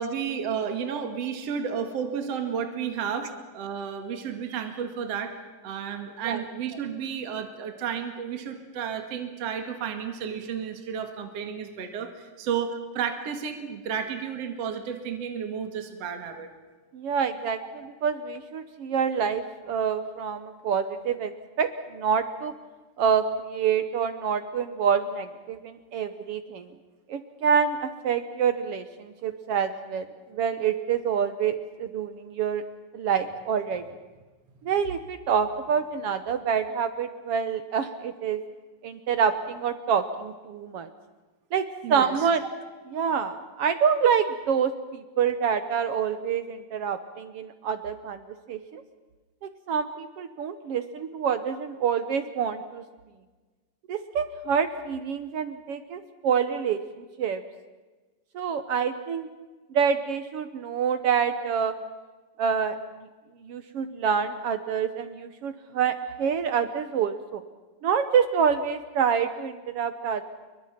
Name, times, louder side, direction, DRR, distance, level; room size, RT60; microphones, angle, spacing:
voice 1, 0.0-5.3 5.6-16.5 41.8-42.1, right 7 dB, 50° right, 5 dB, 2.9 m, -32 dB
voice 2, 16.9-21.3 21.6-22.5 23.0-26.7 27.1-30.1 30.3-32.6 32.9-33.8 34.6-38.4 38.8-40.9 41.5-42.4 42.9-48.2 48.5-48.8 49.4-52.8 53.9-57.4 58.3-59.3 59.7-61.7 62.4-62.8 63.4-67.4 67.8-70.2, right 7 dB, 70° right, 10 dB, 1.5 m, -27 dB
29.0 x 23.5 x 5.9 m, 1.3 s
omnidirectional pair, 3.8 m